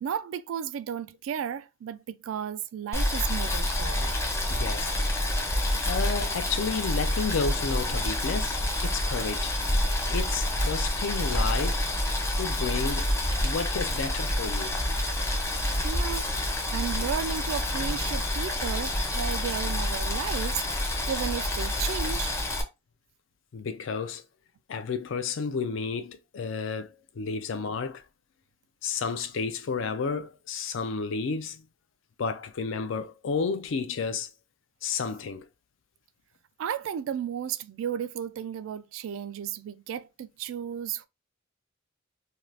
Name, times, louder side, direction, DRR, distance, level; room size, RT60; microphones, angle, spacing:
voice 1, 0.0-4.2 15.8-16.3 16.7-20.8 21.1-22.4 36.6-41.1, right 8 dB, 80° right, 0.3 m, -34 dB
Boiling, 2.9-22.6, left 1 dB, 15° left, 0.5 m, -28 dB
voice 2, 4.5-4.9 5.9-9.5 10.1-11.9 12.4-13.1 13.4-14.7 23.5-24.2 24.7-28.0 28.8-31.7 32.2-34.3 34.8-35.5, left 5 dB, 70° left, 0.4 m, -31 dB
2.6 x 2.3 x 3.2 m
head